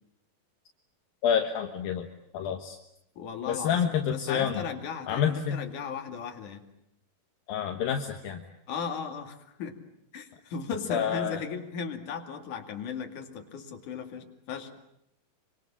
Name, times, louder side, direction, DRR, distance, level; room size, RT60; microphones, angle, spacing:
voice 1, 1.2-2.1 2.3-2.8 3.5-4.6 5.1-5.6 7.5-8.4 10.9-11.4, left 8 dB, 70° left, 4 dB, 3.1 m, -28 dB
voice 2, 3.2-6.6 8.7-9.8 10.1-14.8, left 6 dB, 55° left, 5 dB, 3.8 m, -36 dB
26.0 x 25.5 x 8.6 m, 0.79 s
omnidirectional pair, 4.5 m